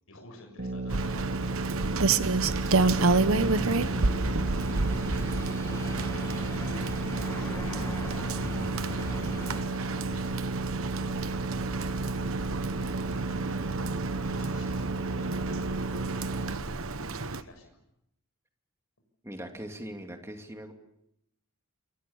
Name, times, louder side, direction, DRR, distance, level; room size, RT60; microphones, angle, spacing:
voice 1, 0.1-2.2 2.6-6.7 7.0-16.8 17.2-17.8, left 2 dB, 65° left, 3 dB, 6.8 m, -51 dB
sound 1, 0.6-16.5, right 3 dB, 50° right, 1.9 m, -34 dB
Rain, 0.9-17.4, right 3 dB, 65° right, 1.1 m, -30 dB
sound 2, 3.4-9.6, left 1 dB, 15° left, 1.2 m, -38 dB
voice 2, 19.2-20.7, equal, 10° right, 4 dB, 2.6 m, -40 dB
28.5 x 23.0 x 7.2 m, 0.79 s
head